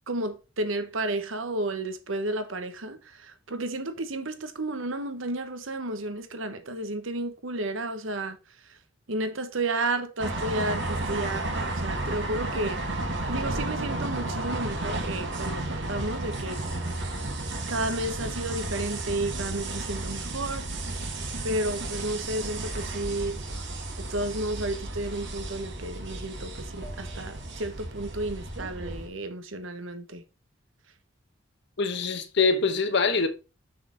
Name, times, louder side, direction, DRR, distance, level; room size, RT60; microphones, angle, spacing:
voice 1, 0.1-8.4 9.1-12.8 13.3-16.6 17.7-20.7 21.4-23.4 24.1-30.2, right 2 dB, 80° right, 1.2 m, -32 dB
sound 1, 10.2-29.1, right 2 dB, 60° right, 1.8 m, -33 dB
voice 2, 31.8-33.3, left 4 dB, 60° left, 1.0 m, -24 dB
6.5 x 6.0 x 3.9 m
head